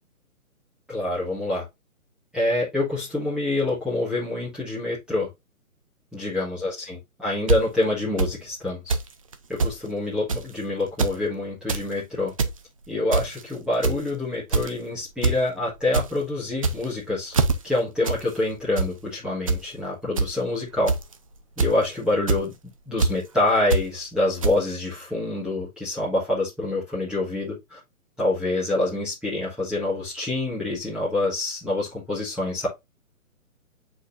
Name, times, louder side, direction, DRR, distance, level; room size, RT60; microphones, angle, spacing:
voice 1, 0.9-1.7 2.3-5.3 6.1-9.0 9.5-12.3 12.9-17.3 17.6-20.9 21.6-22.5 22.9-27.8 28.2-32.7, left 2 dB, ahead, 1.5 m, -26 dB
sound 1, 7.5-7.6 8.2-8.3 8.9-9.1 9.3-9.8 10.3-10.5 10.9-11.2 11.5-11.8 12.2-12.6 13.1-13.4 13.8-14.1 14.5-14.8 15.2-15.4 15.7-16.1 16.5-17.0 17.3-17.5 18.0-18.2 18.5-18.9 19.5-19.6 20.2-20.3 20.9-21.1 21.6-21.9 22.3-22.4 23.0-23.1 23.7-23.8 24.4-24.5, right 3 dB, 25° right, 0.5 m, -22 dB
7.9 x 4.5 x 2.6 m
figure-of-eight pair, 140°, 43 cm